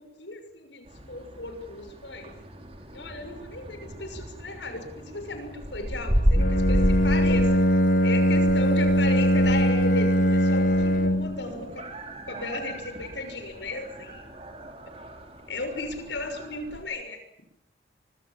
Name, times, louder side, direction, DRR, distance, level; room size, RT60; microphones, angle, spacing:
voice 1, 0.0-2.3 2.9-7.6 8.0-11.8 12.3-14.3 15.5-17.2, left 2 dB, 80° left, 7 dB, 6.2 m, -35 dB
sound 1, 0.9-16.8, equal, 35° right, 4.5 m, -32 dB
Bowed string instrument, 6.3-11.4, equal, 50° left, 1.5 m, -21 dB
25.0 x 25.0 x 7.4 m, 0.77 s
head